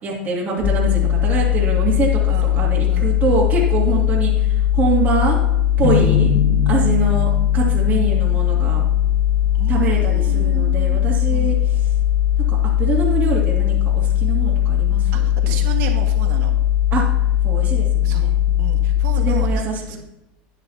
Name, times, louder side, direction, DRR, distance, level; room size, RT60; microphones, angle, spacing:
voice 1, 0.0-5.4 5.8-6.3 6.7-8.8 9.7-11.9 12.5-15.6 16.9-17.0 17.4-18.6 19.2-20.0, right 4 dB, 35° right, -4 dB, 2.5 m, -24 dB
sound 1, 0.6-19.5, left 12 dB, 55° left, 1.0 m, -18 dB
voice 2, 2.9-3.4 3.9-4.1 6.0-6.1 9.5-11.0 11.3-11.6 15.1-16.5 18.0-18.3 18.6-20.0, right 9 dB, 65° right, 3 dB, 1.7 m, -33 dB
sound 2, 5.8-9.1, left 6 dB, 80° left, 1.4 m, -23 dB
11.0 x 9.8 x 2.9 m, 0.91 s
supercardioid pair, 125°, 5 cm